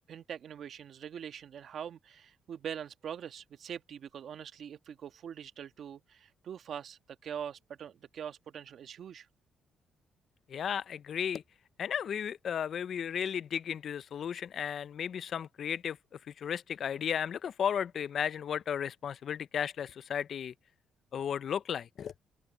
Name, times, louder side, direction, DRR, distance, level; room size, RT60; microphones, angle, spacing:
voice 1, 0.1-9.3, right 8 dB, 60° right, 1.4 m, -43 dB
voice 2, 10.5-11.4 11.8-16.0 16.4-20.5 21.1-22.1, left 8 dB, 60° left, 0.5 m, -34 dB
open air
cardioid pair, 90°, 0 cm